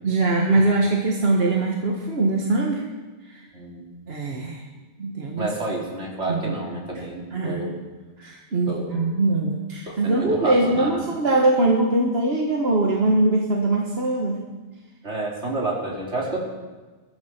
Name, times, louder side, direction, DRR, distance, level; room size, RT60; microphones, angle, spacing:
voice 1, 0.0-2.9 3.3-3.4 4.1-4.6 5.0-5.5 6.3-6.5 7.3-7.6 8.2-14.4, right 2 dB, 60° right, 0 dB, 1.8 m, -22 dB
voice 2, 3.5-3.9 5.4-7.8 8.7-9.0 9.9-11.1 15.0-16.4, right 2 dB, 75° right, -3 dB, 3.7 m, -29 dB
21.5 x 13.5 x 4.5 m, 1.3 s
omnidirectional pair, 1.2 m